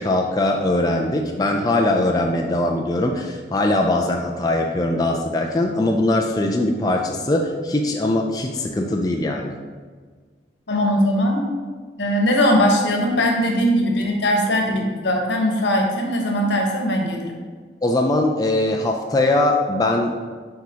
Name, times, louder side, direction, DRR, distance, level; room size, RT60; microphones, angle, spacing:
voice 1, 0.0-9.6 17.8-20.2, left 1 dB, 20° left, 1 dB, 0.4 m, -21 dB
voice 2, 10.7-11.5 12.0-17.4, equal, 80° left, 1 dB, 1.1 m, -20 dB
7.9 x 4.8 x 2.8 m, 1.5 s
head